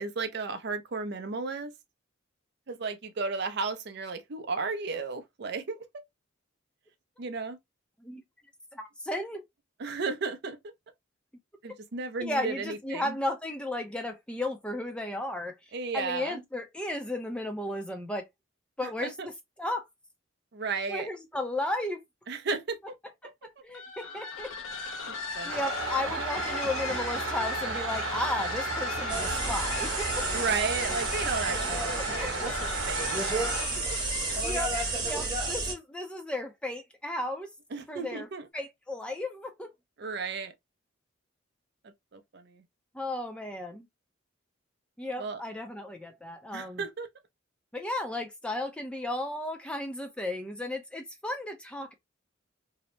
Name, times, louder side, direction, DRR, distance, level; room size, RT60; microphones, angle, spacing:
voice 1, 0.0-1.7 2.7-6.0 7.2-7.6 9.8-10.6 11.6-13.2 15.7-16.4 19.0-19.3 20.5-21.1 22.3-22.8 25.1-25.6 30.3-33.5 33.9-34.0 37.7-38.5 40.0-40.5 41.8-42.4 45.2-45.4 46.5-47.1, right 4 dB, 55° right, 0.5 m, -34 dB
voice 2, 8.7-9.4 12.2-18.3 18.8-19.3 19.6-19.9 20.9-22.0 23.4-24.5 25.4-30.3 31.5-31.6 32.0-32.5 34.4-34.7 35.0-37.5 37.9-38.3 38.5-39.7 42.9-43.9 45.0-46.8 47.7-51.9, left 1 dB, 5° left, 0.4 m, -34 dB
sound 1, 23.7-35.1, left 5 dB, 85° left, 0.7 m, -38 dB
sound 2, 25.5-33.6, right 4 dB, 70° right, 0.8 m, -34 dB
sound 3, 29.1-35.7, right 2 dB, 20° right, 1.0 m, -32 dB
2.7 x 2.0 x 3.0 m
head